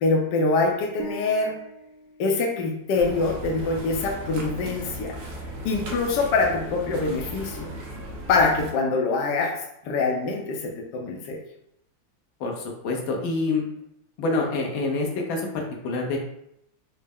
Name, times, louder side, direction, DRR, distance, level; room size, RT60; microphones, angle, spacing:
voice 1, 0.0-1.6 2.2-5.2 5.6-7.7 8.3-9.6 9.8-11.4, left 3 dB, 75° left, 1 dB, 1.2 m, -24 dB
sound 1, 1.0-3.2, right 2 dB, 85° right, 1.4 m, -42 dB
sound 2, 2.9-8.7, right 1 dB, 65° right, 1.2 m, -36 dB
voice 2, 12.4-13.6 14.2-16.2, left 3 dB, 90° left, 1 dB, 1.5 m, -27 dB
4.2 x 2.0 x 3.5 m, 0.77 s
omnidirectional pair, 2.1 m